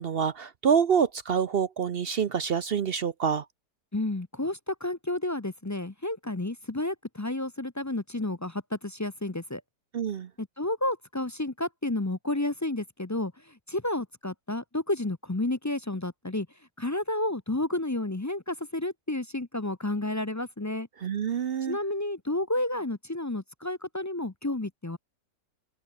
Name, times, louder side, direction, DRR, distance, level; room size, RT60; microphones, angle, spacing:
voice 1, 0.0-3.4 9.9-10.3 21.0-21.8, right 7 dB, 55° right, 0.6 m, -26 dB
voice 2, 3.9-9.6 10.4-16.5 16.8-20.9 21.6-25.0, left 1 dB, 20° left, 0.5 m, -31 dB
open air
omnidirectional pair, 1.7 m